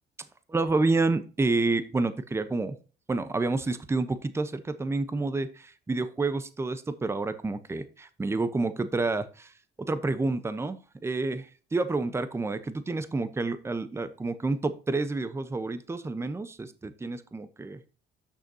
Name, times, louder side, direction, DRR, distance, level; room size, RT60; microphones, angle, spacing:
voice 1, 0.5-2.7 3.1-10.8 11.0-17.8, right 3 dB, 15° right, 12 dB, 0.9 m, -29 dB
11.5 x 6.5 x 2.8 m, 0.35 s
cardioid pair, 110°, 17 cm